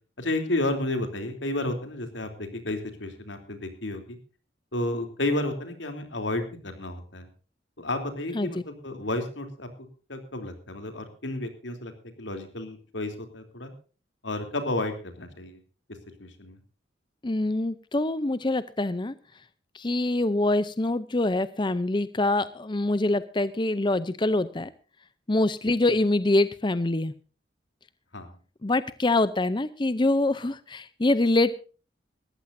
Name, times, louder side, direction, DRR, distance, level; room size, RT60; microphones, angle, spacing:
voice 1, 0.2-4.2 4.7-7.3 7.8-11.9 12.2-13.7 14.2-15.6 16.2-16.6 28.1-28.4, left 2 dB, 90° left, 7 dB, 3.2 m, -32 dB
voice 2, 17.2-19.1 19.7-24.7 25.3-27.1 28.6-31.5, left 2 dB, 25° left, 14 dB, 0.6 m, -25 dB
20.5 x 14.5 x 2.7 m, 0.37 s
head